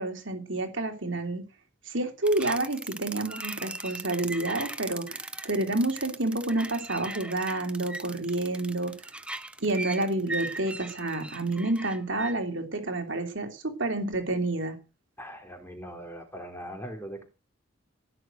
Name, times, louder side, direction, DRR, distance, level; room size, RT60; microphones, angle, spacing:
voice 1, 0.0-1.4 1.8-8.9 9.6-14.8, right 2 dB, 65° right, 5 dB, 3.1 m, -29 dB
sound 1, 2.2-12.3, right 2 dB, 5° right, 0.8 m, -38 dB
voice 2, 15.2-17.2, equal, 10° left, 4 dB, 3.6 m, -40 dB
17.0 x 6.4 x 9.1 m, 0.34 s
head